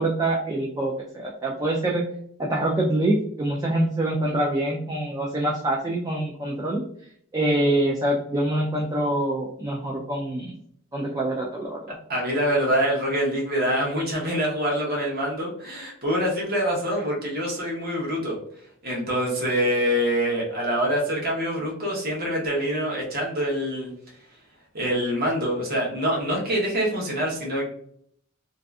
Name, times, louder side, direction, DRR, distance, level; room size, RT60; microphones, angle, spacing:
voice 1, 0.0-2.0 2.4-6.8 7.3-10.6 10.9-11.9, right 1 dB, 15° right, -2 dB, 0.3 m, -25 dB
voice 2, 12.1-18.4 18.8-23.9 24.7-27.7, equal, 50° right, -2 dB, 0.9 m, -25 dB
2.6 x 2.4 x 2.2 m, 0.66 s
head